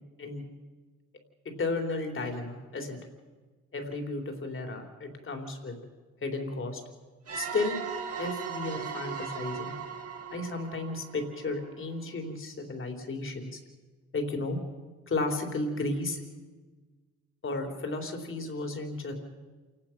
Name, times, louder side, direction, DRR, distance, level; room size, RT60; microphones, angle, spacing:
voice 1, 1.6-3.0 3.7-5.8 6.2-6.8 7.3-7.8 8.2-9.7 10.3-13.6 14.1-14.6 15.1-16.2 17.4-19.1, left 2 dB, 40° left, 4 dB, 3.6 m, -33 dB
sound 1, 7.3-11.8, right 6 dB, 50° right, 2.6 m, -38 dB
28.0 x 18.0 x 5.9 m, 1.3 s
cardioid pair, 90°, 30 cm